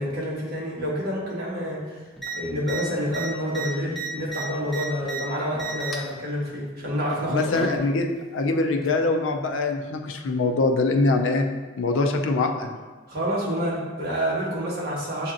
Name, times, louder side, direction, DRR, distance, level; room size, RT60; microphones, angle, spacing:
voice 1, 0.0-2.1 2.3-7.7 13.1-15.3, equal, 55° right, -5 dB, 1.3 m, -28 dB
sound 1, 2.2-2.3 2.6-2.8 3.1-5.2 5.5-6.1 7.1-7.8 8.8-8.9, right 4 dB, ahead, 0.5 m, -33 dB
voice 2, 7.3-8.1 8.3-11.5 11.8-12.8, left 3 dB, 75° left, 5 dB, 0.4 m, -23 dB
7.4 x 2.8 x 2.5 m, 1.3 s
head